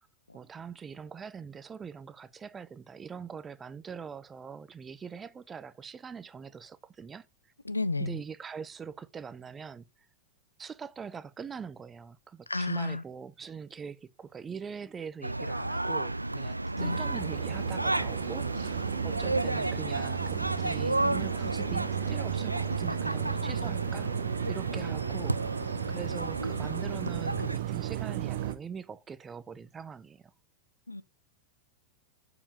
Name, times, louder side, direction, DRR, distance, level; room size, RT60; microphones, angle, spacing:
voice 1, 0.3-7.3 8.0-9.8 10.6-24.1 24.5-30.2, right 6 dB, 20° right, 0.6 m, -43 dB
voice 2, 7.7-8.2 12.5-13.0 16.7-17.0 30.9-31.0, left 2 dB, 80° left, 0.5 m, -31 dB
sound 1, 15.2-27.6, right 2 dB, 85° right, 0.3 m, -33 dB
sound 2, 16.8-28.5, right 10 dB, 55° right, 0.8 m, -34 dB
7.0 x 5.0 x 4.9 m
figure-of-eight pair, 90°, 0 cm